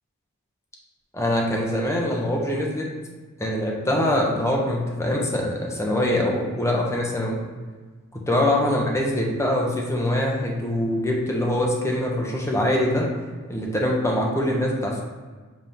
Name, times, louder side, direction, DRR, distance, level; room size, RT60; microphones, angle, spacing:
voice 1, 1.1-2.9 3.4-7.4 8.1-13.1 13.5-15.0, left 1 dB, 15° left, -2 dB, 1.1 m, -23 dB
7.7 x 3.8 x 3.6 m, 1.4 s
head